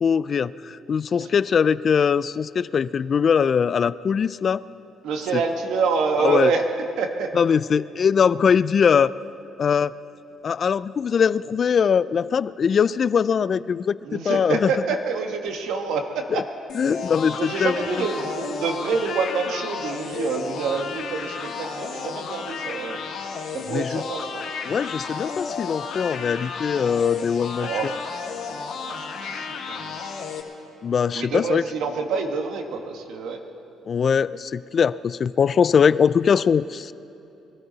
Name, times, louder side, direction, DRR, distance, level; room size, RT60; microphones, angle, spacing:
voice 1, 0.0-4.6 5.3-5.4 6.2-6.5 7.3-9.2 9.6-9.9 10.4-14.7 16.3-16.4 16.8-18.0 23.7-24.0 24.7-27.7 30.8-31.6 33.9-36.9, left 6 dB, 45° left, 18 dB, 0.3 m, -21 dB
voice 2, 5.0-6.7 7.0-7.3 14.0-16.4 17.0-17.1 17.4-23.0 23.5-24.4 27.6-28.3 28.9-29.9 31.1-33.4, right 5 dB, 80° right, 4 dB, 1.5 m, -27 dB
sound 1, 16.7-30.4, left 5 dB, 65° left, 2.3 m, -33 dB
22.5 x 13.5 x 4.0 m, 2.9 s
cardioid pair, 95°, 0 cm